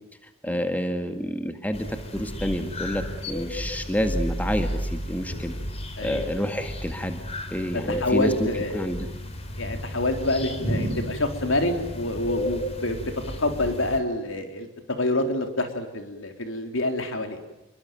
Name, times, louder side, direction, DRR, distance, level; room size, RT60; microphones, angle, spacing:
voice 1, 0.4-5.5 6.0-7.2 7.5-8.5 8.7-9.1, equal, 10° left, 7 dB, 1.9 m, -28 dB
sound 1, 1.7-14.0, equal, 30° left, 3.9 m, -33 dB
voice 2, 6.0-6.3 7.9-8.8 9.6-13.1 13.4-17.4, left 2 dB, 70° left, 6 dB, 3.9 m, -27 dB
28.5 x 22.5 x 9.3 m, 0.94 s
head